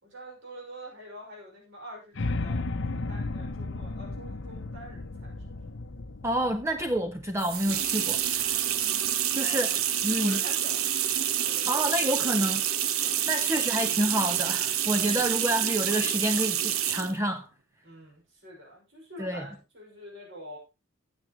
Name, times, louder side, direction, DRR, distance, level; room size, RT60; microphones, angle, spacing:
voice 1, 0.0-5.5 9.4-9.8 10.1-13.3 14.9-15.4 17.8-20.6, equal, 55° right, 5.9 m, -46 dB
sound 1, 2.1-8.3, left 2 dB, 55° left, 0.7 m, -34 dB
voice 2, 6.2-8.6 9.3-9.7 10.0-10.4 11.7-12.6 13.3-17.5 19.2-19.5, equal, 15° right, 0.6 m, -28 dB
sound 2, 7.4-17.2, right 10 dB, 75° right, 0.8 m, -28 dB
16.5 x 7.7 x 3.1 m
head